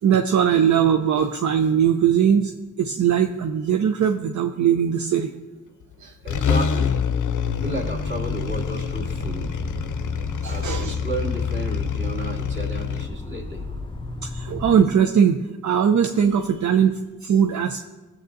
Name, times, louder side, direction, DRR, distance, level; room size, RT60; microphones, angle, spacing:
voice 1, 0.0-2.5 2.8-5.3 6.0-6.1 10.0-10.1 10.4-11.0 14.2-15.4 15.6-17.8, right 8 dB, 65° right, 6 dB, 0.6 m, -20 dB
sound 1, 5.8-5.9 6.3-13.1, left 7 dB, 70° left, 0.5 m, -26 dB
voice 2, 6.2-7.0 7.6-9.5 10.4-13.6, right 2 dB, 35° right, -2 dB, 2.4 m, -32 dB
sound 2, 7.6-14.9, left 2 dB, 15° left, 0.6 m, -34 dB
16.5 x 7.3 x 2.6 m, 1.2 s
cardioid pair, 65°, 31 cm